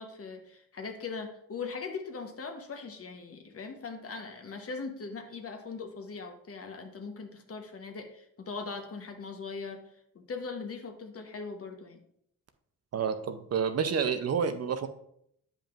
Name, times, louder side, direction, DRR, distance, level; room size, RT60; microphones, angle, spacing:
voice 1, 0.0-9.9 10.1-12.0, left 4 dB, 40° left, 5 dB, 1.0 m, -40 dB
voice 2, 12.9-14.9, right 6 dB, 45° right, 8 dB, 0.6 m, -29 dB
8.6 x 5.3 x 2.5 m, 0.71 s
cardioid pair, 85°, 35 cm